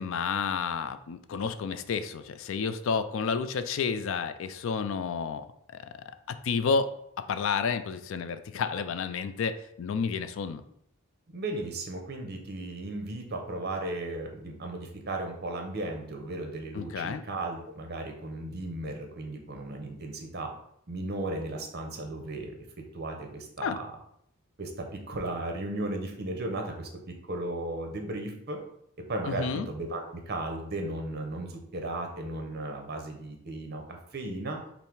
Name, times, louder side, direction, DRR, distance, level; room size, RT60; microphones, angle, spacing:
voice 1, 0.0-5.9 6.3-6.9 7.3-10.6 16.7-17.2 23.6-23.8 29.3-29.7, left 5 dB, 65° left, 11 dB, 0.4 m, -30 dB
voice 2, 11.3-20.5 20.9-22.5 22.9-23.9 24.6-28.6 29.1-34.6, right 2 dB, 50° right, 3 dB, 0.8 m, -35 dB
5.5 x 2.1 x 4.6 m, 0.72 s
head